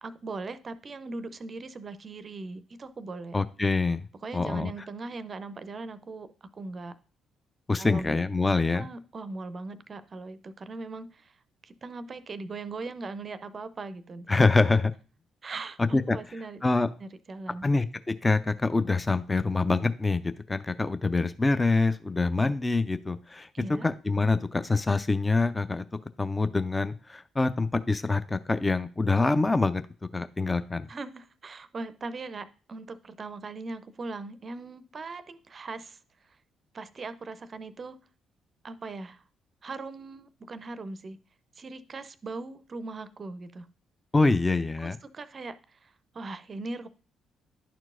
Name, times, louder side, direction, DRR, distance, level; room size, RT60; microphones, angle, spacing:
voice 1, 0.0-3.4 4.2-7.0 7.8-8.2 8.5-11.4 11.6-14.6 15.4-16.6 17.0-17.7 23.5-23.9 30.9-36.0 36.3-36.4 36.7-38.0 38.6-39.2 39.6-41.2 41.6-43.7 44.8-46.9, right 3 dB, 40° right, 14 dB, 0.5 m, -40 dB
voice 2, 3.3-4.0 4.3-4.7 7.7-8.9 14.3-14.9 15.9-16.2 16.6-16.9 17.6-17.8 18.2-25.8 26.2-29.8 30.1-30.9 44.1-45.0, left 3 dB, 20° left, 12 dB, 0.5 m, -25 dB
11.0 x 4.5 x 2.5 m, 0.37 s
figure-of-eight pair, 40°, 0 cm